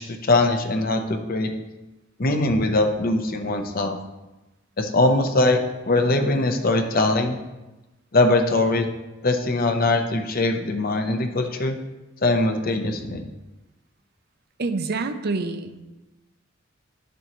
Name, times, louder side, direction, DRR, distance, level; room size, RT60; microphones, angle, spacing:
voice 1, 0.0-1.5 2.2-4.0 4.8-7.4 8.1-8.9 9.2-11.8 12.2-13.2, left 2 dB, 45° left, 6 dB, 0.8 m, -21 dB
voice 2, 14.6-15.8, right 3 dB, 50° right, 9 dB, 0.6 m, -27 dB
11.5 x 6.8 x 3.1 m, 1.1 s
head